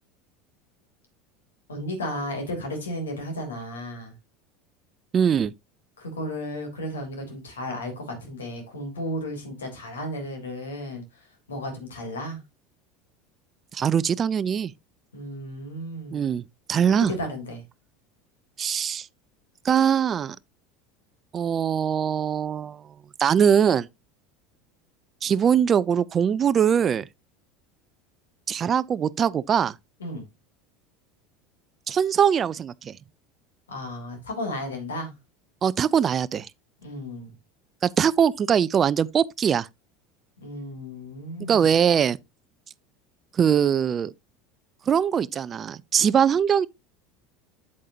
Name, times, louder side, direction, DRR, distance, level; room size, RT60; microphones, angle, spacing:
voice 1, 1.7-4.1 6.0-11.0 11.5-12.4 15.1-16.3 17.1-17.6 30.0-30.3 33.7-35.1 36.8-37.3 40.4-41.7, left 1 dB, 75° left, 3.1 m, -34 dB
voice 2, 5.1-5.5 13.7-14.7 16.1-16.4 16.7-17.1 18.6-19.1 19.6-20.4 21.3-22.8 23.2-23.9 25.2-27.1 28.5-29.7 31.9-33.0 35.6-36.5 37.8-39.7 41.5-42.2 43.4-44.1 44.9-46.7, right 8 dB, 30° right, 0.4 m, -22 dB
8.5 x 8.2 x 2.7 m
figure-of-eight pair, 75°, 0 cm